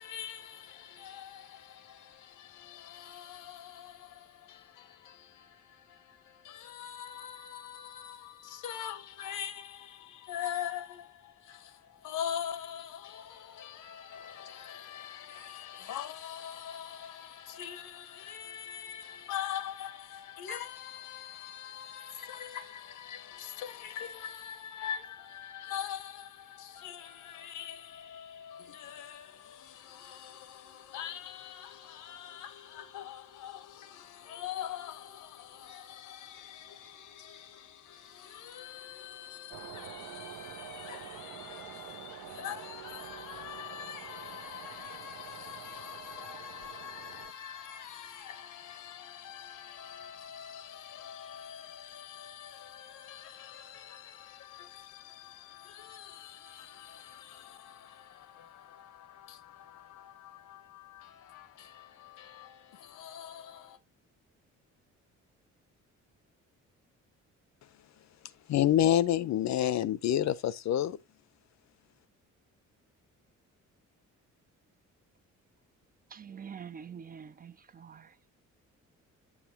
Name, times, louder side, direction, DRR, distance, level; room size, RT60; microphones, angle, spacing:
voice 1, 0.0-63.8, left 9 dB, 80° left, 1.0 m, -44 dB
sound 1, 39.5-47.3, right 10 dB, 80° right, 0.8 m, -47 dB
voice 2, 68.5-71.0, left 11 dB, 60° left, 0.7 m, -26 dB
voice 3, 76.1-78.0, right 7 dB, 30° right, 0.4 m, -45 dB
7.9 x 7.2 x 2.8 m
cardioid pair, 90°, 30 cm